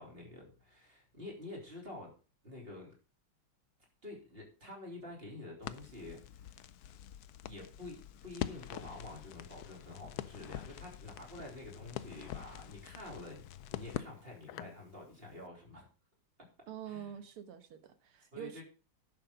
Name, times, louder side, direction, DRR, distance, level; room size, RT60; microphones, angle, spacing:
voice 1, 0.0-2.1 2.4-2.9 4.0-6.7 7.4-15.9 16.9-17.1 18.3-18.6, left 2 dB, 25° right, 3.7 m, -48 dB
Crackle, 5.6-14.8, left 11 dB, 80° left, 0.8 m, -45 dB
voice 2, 16.7-18.6, right 9 dB, 85° right, 2.1 m, -46 dB
11.0 x 6.6 x 5.2 m
omnidirectional pair, 2.3 m